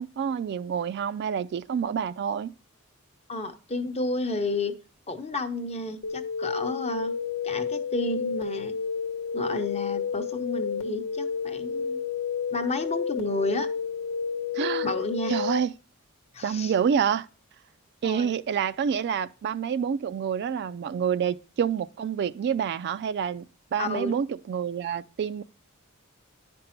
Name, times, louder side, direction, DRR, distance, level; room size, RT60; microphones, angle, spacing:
voice 1, 0.0-2.5 14.5-14.9 15.3-15.7 16.4-17.3 18.0-23.5 23.7-25.4, right 7 dB, 50° right, 0.3 m, -28 dB
voice 2, 3.3-4.7 5.1-7.1 7.4-8.8 9.3-12.0 12.5-13.7 14.8-15.4 16.3-16.7 18.0-18.3 23.8-24.1, left 2 dB, 30° left, 0.7 m, -31 dB
sound 1, 6.0-15.6, left 6 dB, 80° left, 1.1 m, -31 dB
9.7 x 5.3 x 4.3 m
head